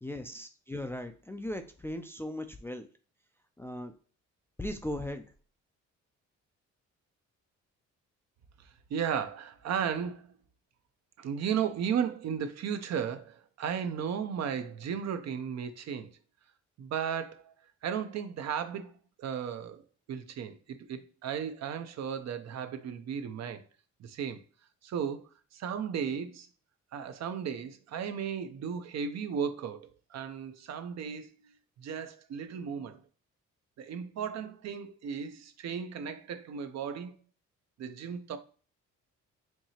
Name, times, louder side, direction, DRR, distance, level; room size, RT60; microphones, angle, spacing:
voice 1, 0.0-2.9 3.6-3.9 4.6-5.2, left 1 dB, 10° left, 0.3 m, -38 dB
voice 2, 8.9-10.3 11.2-16.1 16.8-17.5 17.8-18.9 19.2-23.6 24.0-24.4 24.8-26.5 26.9-31.3 31.8-33.0 33.8-37.2 37.8-38.4, right 7 dB, 60° right, 0.6 m, -35 dB
4.6 x 2.7 x 2.8 m
cardioid pair, 90°, 30 cm